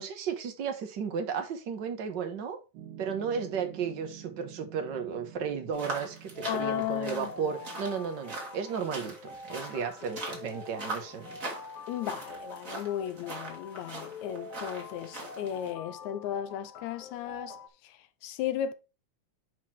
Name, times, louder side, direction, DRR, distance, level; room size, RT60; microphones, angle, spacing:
voice 1, 0.0-2.6 3.0-9.1 9.5-11.4, right 6 dB, 55° right, 1.3 m, -34 dB
Piano, 2.7-7.8, right 10 dB, 85° right, 2.5 m, -49 dB
sound 1, 5.7-15.7, right 2 dB, 30° right, 2.3 m, -42 dB
sound 2, 6.3-17.7, left 3 dB, 60° left, 2.0 m, -46 dB
voice 2, 6.5-7.5 11.9-17.6 17.8-17.9 18.2-18.7, left 11 dB, 75° left, 1.9 m, -35 dB
10.0 x 4.3 x 4.6 m
omnidirectional pair, 3.5 m